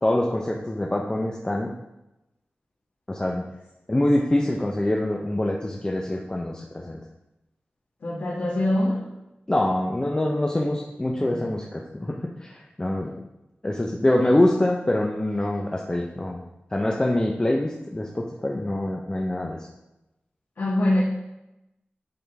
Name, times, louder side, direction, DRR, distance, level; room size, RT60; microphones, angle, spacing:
voice 1, 0.0-1.7 3.1-3.4 3.9-7.0 9.5-13.2 13.6-16.4 16.7-19.6, left 1 dB, 20° left, -1 dB, 0.6 m, -25 dB
voice 2, 8.0-9.0 11.2-11.5 20.6-21.0, left 1 dB, 75° left, -7 dB, 1.5 m, -24 dB
10.5 x 3.7 x 3.4 m, 0.94 s
wide cardioid pair, 100°, 4 cm